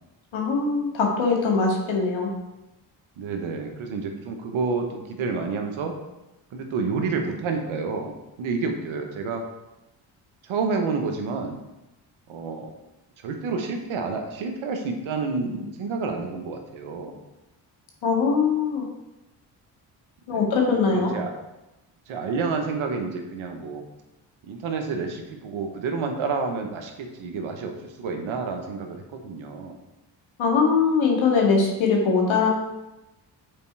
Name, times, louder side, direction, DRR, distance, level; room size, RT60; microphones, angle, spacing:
voice 1, 0.3-2.3 18.0-18.8 20.3-21.1 30.4-32.5, left 4 dB, 65° left, 0 dB, 2.0 m, -21 dB
voice 2, 3.2-5.9 6.5-8.1 8.4-9.4 10.4-11.6 12.3-12.7 13.2-17.2 20.3-20.4 20.7-21.3 22.1-23.8 24.4-29.8, right 4 dB, 70° right, 4 dB, 1.1 m, -29 dB
6.9 x 4.3 x 4.6 m, 0.98 s
supercardioid pair, 55°, 49 cm